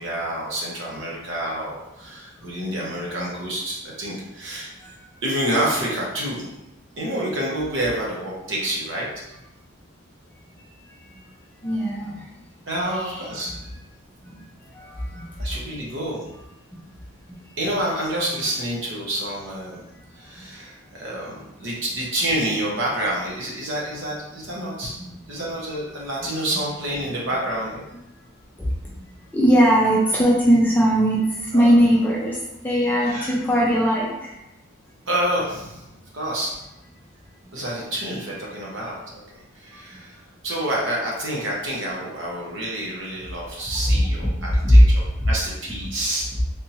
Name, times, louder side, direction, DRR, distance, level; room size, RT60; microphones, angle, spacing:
voice 1, 0.0-4.7 5.2-6.5 7.0-9.1 12.7-13.5 15.4-16.2 17.6-19.8 20.1-24.9 25.3-27.8 31.5-31.7 33.0-33.3 35.1-35.9 36.1-36.6 37.5-39.2 39.5-40.2 40.4-46.3, right 1 dB, 60° right, -4 dB, 1.0 m, -28 dB
voice 2, 11.6-12.2 12.9-13.3 14.3-14.4 14.8-15.3 29.3-31.2 31.5-32.4 32.6-34.1 44.6-44.8, equal, 10° left, -5 dB, 0.5 m, -18 dB
3.5 x 2.8 x 2.8 m, 0.93 s
head